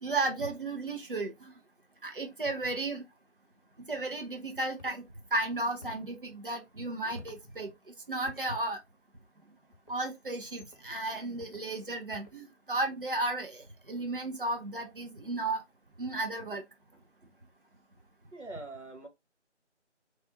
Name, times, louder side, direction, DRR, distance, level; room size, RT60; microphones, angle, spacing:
voice 1, 0.0-1.5 2.0-3.0 3.9-5.0 5.3-7.7 8.1-8.8 9.9-15.6 16.0-16.6, right 2 dB, 50° right, 0.9 m, -34 dB
sound 1, 4.8-5.0 5.8-6.1 7.2-7.5 8.3-8.5 9.7-10.0 10.6-10.9 11.4-11.7 12.1-12.4, left 2 dB, 35° left, 0.8 m, -52 dB
voice 2, 16.9-17.3 18.3-19.1, right 2 dB, 80° right, 1.7 m, -47 dB
3.3 x 2.3 x 3.9 m
figure-of-eight pair, 165°, 35 cm